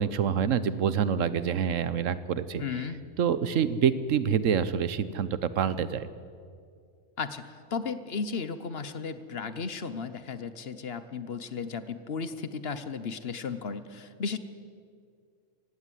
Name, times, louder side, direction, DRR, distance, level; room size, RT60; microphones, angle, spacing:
voice 1, 0.0-2.8 3.2-6.1, right 7 dB, 80° right, 15 dB, 1.2 m, -27 dB
voice 2, 2.6-3.0 7.2-14.4, left 5 dB, 55° left, 12 dB, 1.1 m, -35 dB
17.0 x 16.0 x 9.8 m, 2.2 s
omnidirectional pair, 1.3 m